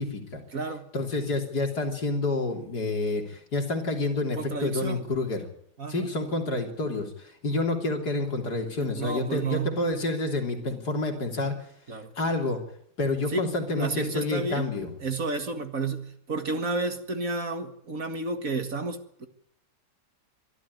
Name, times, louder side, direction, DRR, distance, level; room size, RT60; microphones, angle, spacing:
voice 1, 0.0-0.4 0.9-5.5 5.9-11.6 12.2-12.6 13.0-14.9, left 2 dB, 60° left, 3 dB, 3.9 m, -28 dB
voice 2, 0.5-0.9 4.3-5.0 5.8-6.1 8.8-9.8 11.9-12.1 13.3-13.5 13.7-14.6 15.0-19.3, right 3 dB, 50° right, 8 dB, 2.2 m, -31 dB
23.5 x 13.0 x 9.6 m, 0.68 s
omnidirectional pair, 1.9 m